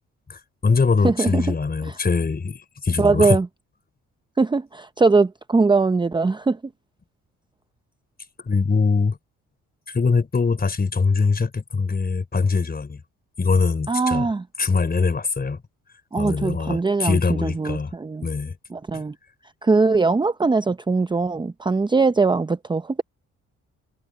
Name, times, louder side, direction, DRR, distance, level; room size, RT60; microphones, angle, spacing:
voice 1, 0.3-3.4 8.4-9.2 9.9-13.0 13.4-14.3 14.6-15.6 16.2-17.9 18.2-18.5 18.9-19.0, left 4 dB, 30° left, 4.9 m, -22 dB
voice 2, 1.0-1.5 3.0-3.5 4.4-6.6 13.9-14.4 16.1-18.3 18.7-19.1 19.6-23.0, right 4 dB, 15° right, 0.6 m, -21 dB
cardioid pair, 90°, 30 cm